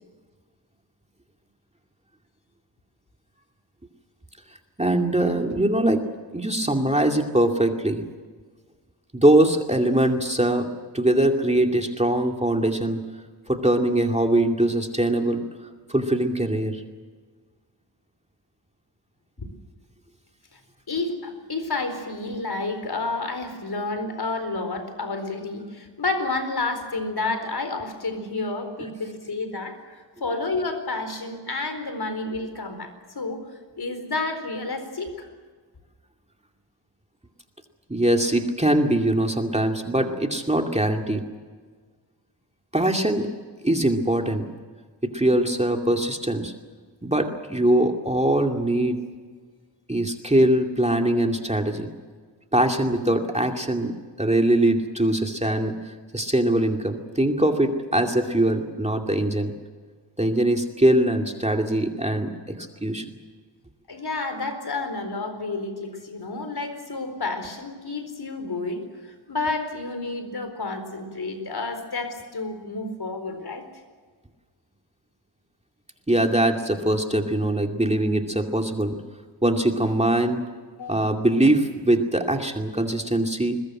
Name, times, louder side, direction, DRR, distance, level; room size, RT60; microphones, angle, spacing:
voice 1, 4.8-6.0 6.3-8.0 9.1-10.7 10.9-13.0 13.5-15.4 15.9-16.8 37.9-41.2 42.7-43.3 43.6-44.5 45.0-46.5 47.0-49.0 49.9-51.9 52.5-53.9 54.2-55.7 56.1-59.5 60.2-63.1 76.1-79.0 79.4-80.4 80.9-83.6, right 1 dB, 15° right, 4 dB, 2.4 m, -22 dB
voice 2, 20.9-33.4 33.8-35.3 63.9-73.7 80.8-81.1, left 3 dB, 55° left, 8 dB, 4.4 m, -30 dB
22.0 x 21.0 x 7.8 m, 1.5 s
cardioid pair, 65°, 44 cm